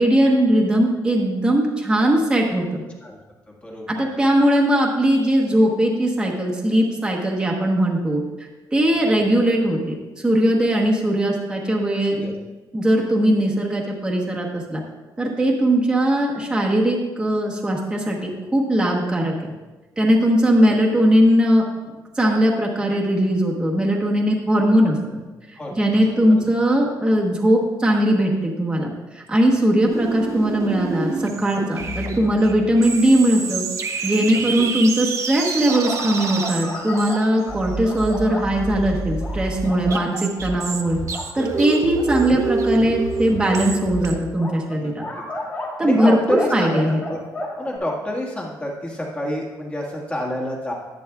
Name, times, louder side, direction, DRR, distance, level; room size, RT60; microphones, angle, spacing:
voice 1, 0.0-2.8 3.9-8.2 8.7-10.0 10.2-12.2 12.7-14.8 15.2-19.5 20.0-25.0 25.7-33.6 34.0-41.0 41.3-45.0 45.8-47.0, right 1 dB, 10° right, -2 dB, 1.1 m, -19 dB
voice 2, 3.5-4.1 8.9-9.0 12.1-12.3 20.4-20.5 25.5-26.4 34.3-34.7 44.7-44.9 45.8-47.2 47.6-50.7, left 1 dB, 15° left, -2 dB, 1.6 m, -29 dB
sound 1, 29.9-44.1, right 4 dB, 45° right, 0.7 m, -28 dB
sound 2, 35.7-38.6 39.2-40.0 40.5-40.6 41.0-41.3 41.9-42.0 43.4-43.5 44.4-46.1 46.4-47.8, left 2 dB, 30° left, 2.4 m, -32 dB
11.0 x 9.4 x 2.3 m, 1.2 s
cardioid pair, 140°, 7 cm